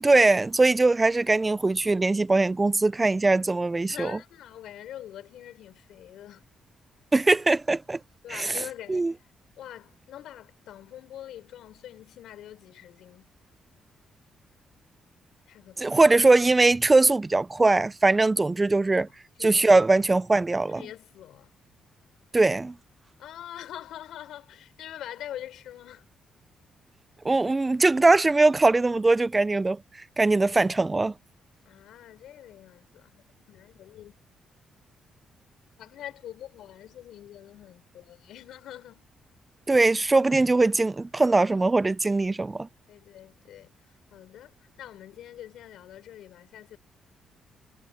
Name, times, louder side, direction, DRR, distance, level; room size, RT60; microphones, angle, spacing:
voice 1, 0.0-4.1 7.1-8.0 8.3-8.5 8.9-9.1 15.8-19.1 19.4-20.8 22.3-22.7 27.2-29.8 30.2-31.1 39.7-42.7, right 3 dB, 20° right, 0.4 m, -21 dB
voice 2, 3.9-6.5 8.2-9.1 9.6-13.3 15.5-16.0 19.4-19.6 20.7-21.5 23.2-26.1 31.6-33.2 33.5-34.2 35.8-39.1 42.9-46.8, left 11 dB, 85° left, 5.4 m, -44 dB
cardioid pair, 100°, 0 cm